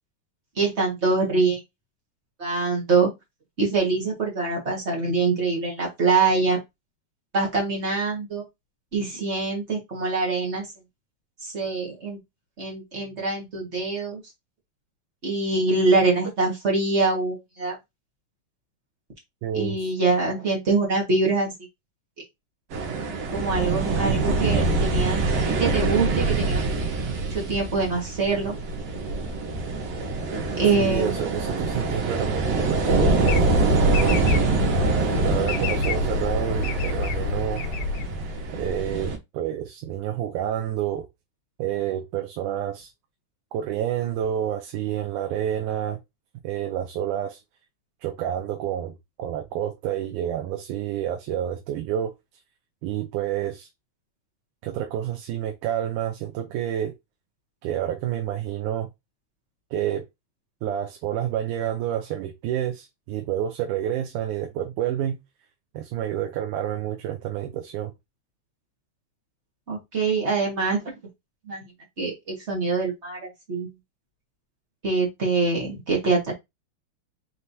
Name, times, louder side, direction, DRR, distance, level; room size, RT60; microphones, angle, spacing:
voice 1, 0.5-1.6 2.4-3.1 3.6-6.6 7.3-8.4 8.9-10.7 11.4-12.2 12.6-14.2 15.2-17.7 19.5-21.6 23.3-26.6 27.3-28.5 30.6-31.2 69.7-70.8 71.5-71.7 72.0-73.7 74.8-76.3, right 3 dB, 35° right, 1.2 m, -24 dB
voice 2, 19.4-19.8 30.8-34.4 35.2-37.6 38.5-41.1 41.6-42.9 43.5-46.0 46.4-47.4 48.0-52.1 52.8-53.7 54.6-56.9 57.6-58.9 59.7-60.0 60.6-65.2 65.7-67.9, right 11 dB, 90° right, 2.2 m, -29 dB
sound 1, 22.7-39.2, right 3 dB, 65° right, 2.1 m, -25 dB
sound 2, 33.2-38.6, left 3 dB, 75° left, 1.9 m, -28 dB
5.7 x 3.2 x 2.7 m
omnidirectional pair, 3.5 m